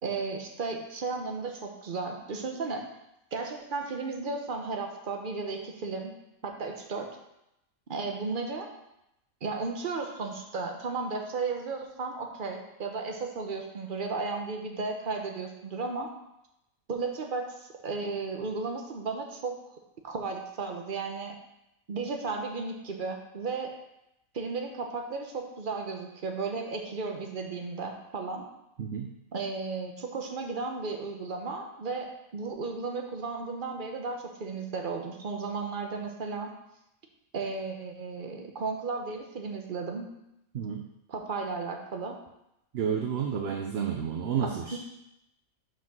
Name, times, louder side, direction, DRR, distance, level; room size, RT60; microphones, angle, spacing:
voice 1, 0.0-2.9 3.3-6.1 6.4-7.1 7.9-8.7 9.4-16.1 16.9-19.6 20.0-21.4 21.9-23.7 24.3-28.4 29.3-36.5 37.3-40.1 41.1-42.2 44.4-44.8, right 4 dB, 40° right, 3 dB, 1.0 m, -34 dB
voice 2, 28.8-29.1 40.5-40.8 42.7-44.8, right 7 dB, 60° right, 3 dB, 0.8 m, -30 dB
6.0 x 4.8 x 6.0 m, 0.85 s
omnidirectional pair, 1.5 m